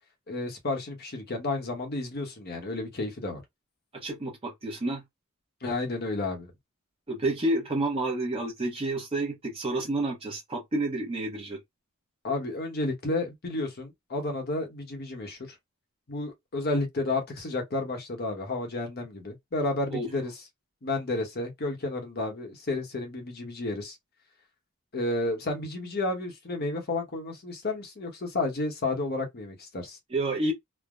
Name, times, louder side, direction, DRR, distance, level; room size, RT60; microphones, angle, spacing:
voice 1, 0.3-3.4 5.6-6.5 12.2-15.5 16.1-20.3 20.8-24.0 24.9-30.0, left 2 dB, 50° left, 1.0 m, -31 dB
voice 2, 3.9-5.0 7.1-11.6 19.9-20.1 30.1-30.5, right 2 dB, 25° right, 0.8 m, -29 dB
3.3 x 2.1 x 2.3 m
head